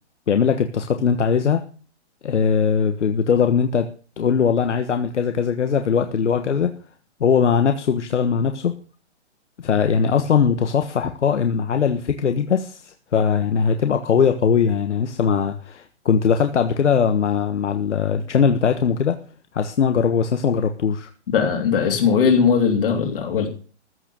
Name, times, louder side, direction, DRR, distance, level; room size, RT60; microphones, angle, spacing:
voice 1, 0.3-1.6 2.2-3.9 4.2-6.7 7.2-8.7 9.6-19.2 19.5-21.1, left 6 dB, 85° left, 7 dB, 1.5 m, -20 dB
voice 2, 21.3-23.5, left 6 dB, 50° left, 2 dB, 3.2 m, -19 dB
14.5 x 6.3 x 8.4 m, 0.39 s
hypercardioid pair, 170°, 35 cm